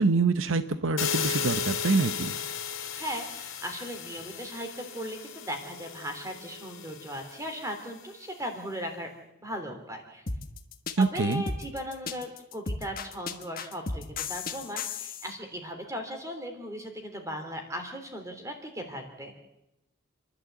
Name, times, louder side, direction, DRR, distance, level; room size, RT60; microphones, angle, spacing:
voice 1, 0.0-2.3 11.0-11.4, right 3 dB, 70° right, 11 dB, 0.8 m, -25 dB
sound 1, 1.0-7.8, left 7 dB, 70° left, 3.1 m, -35 dB
voice 2, 2.9-9.1 9.4-10.2 11.0-19.3, equal, 15° right, 5 dB, 3.2 m, -37 dB
sound 2, 10.3-15.3, left 4 dB, 45° left, 1.3 m, -35 dB
29.0 x 11.5 x 8.2 m, 0.89 s
head